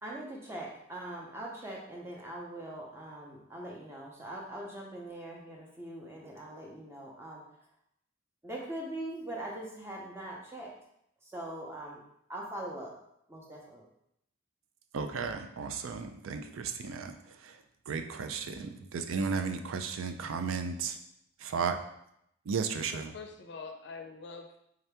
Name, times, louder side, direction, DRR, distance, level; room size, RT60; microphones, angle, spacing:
voice 1, 0.0-7.4 8.4-10.7 11.2-12.0 12.3-13.0 13.3-13.9, right 1 dB, 10° right, -2 dB, 0.6 m, -42 dB
voice 2, 14.9-21.0 21.4-21.8 22.4-23.1, right 5 dB, 85° right, 7 dB, 0.4 m, -34 dB
voice 3, 22.9-24.6, left 4 dB, 60° left, 4 dB, 0.4 m, -45 dB
3.7 x 2.8 x 3.4 m, 0.75 s
head